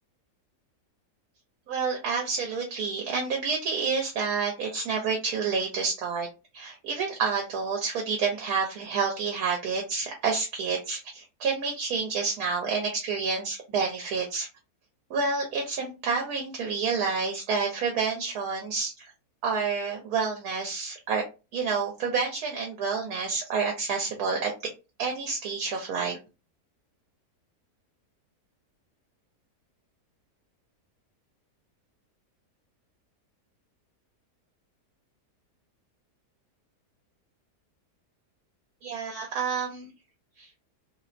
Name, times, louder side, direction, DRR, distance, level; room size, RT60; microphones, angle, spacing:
voice 1, 1.7-6.3 6.5-14.5 15.1-19.1 19.4-21.2 21.5-24.7 25.0-26.2 38.8-39.9 40.4-40.5, right 5 dB, 70° right, 1 dB, 1.1 m, -29 dB
2.8 x 2.0 x 2.4 m, 0.29 s
omnidirectional pair, 1.7 m